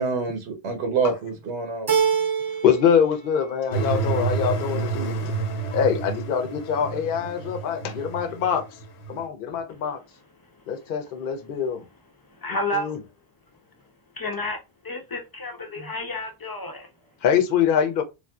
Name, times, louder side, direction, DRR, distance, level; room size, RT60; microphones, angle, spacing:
voice 1, 0.0-1.9 15.8-15.9, right 4 dB, 85° right, 1.1 m, -27 dB
Keyboard (musical), 1.9-3.0 3.3-4.0, right 6 dB, 35° right, 0.4 m, -25 dB
voice 2, 2.6-5.3 5.7-8.6 9.1-10.0 10.7-11.8 12.7-13.0 17.2-18.0, left 8 dB, 60° left, 0.7 m, -24 dB
sound 1, 3.7-9.2, right 4 dB, 85° left, 1.0 m, -29 dB
voice 3, 12.4-13.0 14.1-14.6 14.8-16.9, left 1 dB, 30° left, 0.4 m, -30 dB
3.3 x 2.6 x 2.2 m
omnidirectional pair, 1.1 m